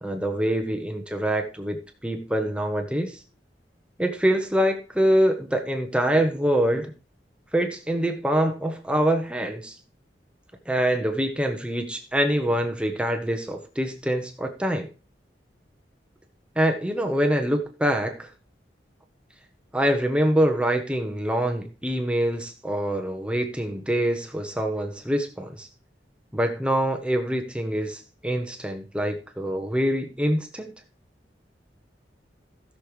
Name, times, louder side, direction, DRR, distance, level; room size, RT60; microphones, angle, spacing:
voice 1, 0.0-3.2 4.0-6.9 7.5-9.8 10.7-14.9 16.6-18.3 19.7-25.7 26.3-30.7, equal, 5° right, 4 dB, 0.9 m, -25 dB
16.5 x 6.4 x 3.1 m, 0.35 s
head